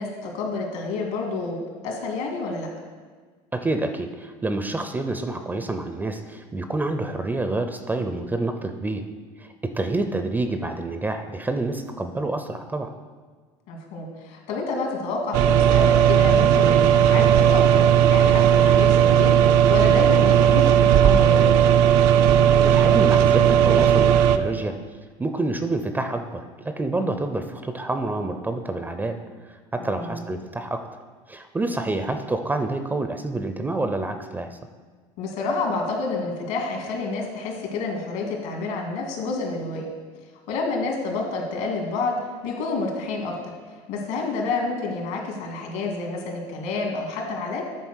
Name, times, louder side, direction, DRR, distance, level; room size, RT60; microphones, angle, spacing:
voice 1, 0.0-1.6 1.8-2.7 13.7-21.6 29.8-30.2 35.2-39.9 40.5-42.2 42.4-43.5 43.9-47.6, left 3 dB, 75° left, 1 dB, 2.3 m, -29 dB
voice 2, 3.5-9.1 9.4-12.9 22.6-24.8 25.2-29.2 29.5-30.9 31.3-34.6, right 2 dB, 10° right, 7 dB, 0.5 m, -28 dB
sound 1, 15.3-24.4, right 9 dB, 65° right, 0.5 m, -16 dB
9.2 x 4.3 x 6.3 m, 1.5 s
supercardioid pair, 115°, 14 cm